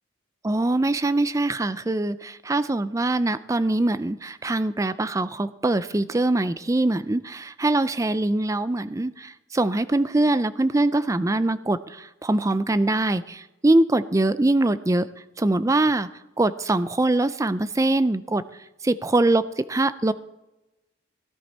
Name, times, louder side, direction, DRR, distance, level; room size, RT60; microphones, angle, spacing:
voice 1, 0.4-15.1 15.4-16.1 16.4-18.4 18.8-20.1, right 2 dB, 15° right, 14 dB, 0.4 m, -23 dB
17.0 x 11.0 x 4.2 m, 0.99 s
head